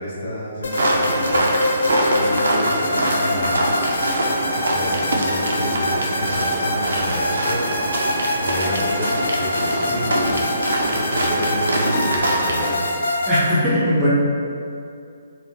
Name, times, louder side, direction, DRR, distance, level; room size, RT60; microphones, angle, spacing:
voice 1, 0.0-1.6 2.0-4.2 4.6-7.6 8.4-10.5 10.8-12.9, left 1 dB, 55° left, -9 dB, 0.9 m, -29 dB
sound 1, 0.6-13.5, left 1 dB, 70° left, 0.3 m, -25 dB
sound 2, 0.7-12.7, right 1 dB, 80° right, 0.3 m, -24 dB
voice 2, 13.3-14.1, equal, 10° right, -11 dB, 0.5 m, -19 dB
2.1 x 2.1 x 2.8 m, 2.4 s
hypercardioid pair, 150°, 0 cm